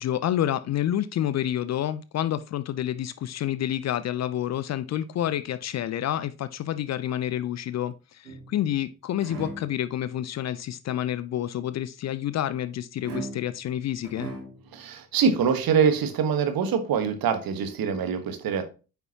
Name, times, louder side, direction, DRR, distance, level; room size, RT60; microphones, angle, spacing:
voice 1, 0.0-14.3, left 11 dB, 40° left, 0.5 m, -29 dB
sound 1, 8.2-8.8 9.2-9.8 13.0-13.7 14.0-14.7, right 3 dB, 90° right, 2.1 m, -38 dB
voice 2, 14.7-18.6, right 6 dB, 55° right, 1.4 m, -24 dB
9.1 x 5.8 x 2.8 m
hypercardioid pair, 50°, 43 cm